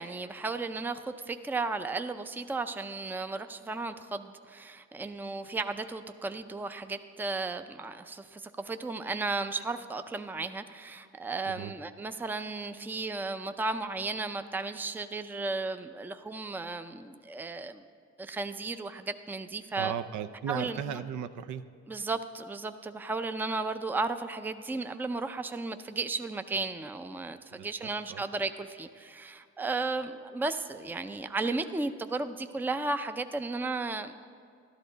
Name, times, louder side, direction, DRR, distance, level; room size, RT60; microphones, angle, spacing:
voice 1, 0.0-17.8 18.2-19.9 20.5-21.0 21.9-34.1, right 3 dB, 5° right, 9 dB, 0.4 m, -34 dB
voice 2, 19.8-21.6 27.5-28.2, right 8 dB, 75° right, 11 dB, 0.6 m, -36 dB
12.5 x 11.5 x 3.9 m, 2.3 s
cardioid pair, 90°, 30 cm